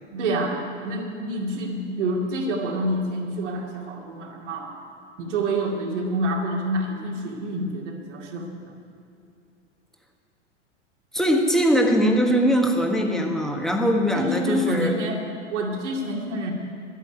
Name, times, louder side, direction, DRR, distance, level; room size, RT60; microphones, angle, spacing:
voice 1, 0.1-4.8 5.2-8.7 14.1-15.2 15.5-16.5, right 1 dB, 70° right, 0 dB, 2.4 m, -27 dB
voice 2, 11.1-14.9, equal, ahead, 2 dB, 1.4 m, -21 dB
11.5 x 9.1 x 9.4 m, 2.6 s
figure-of-eight pair, 90°, 37 cm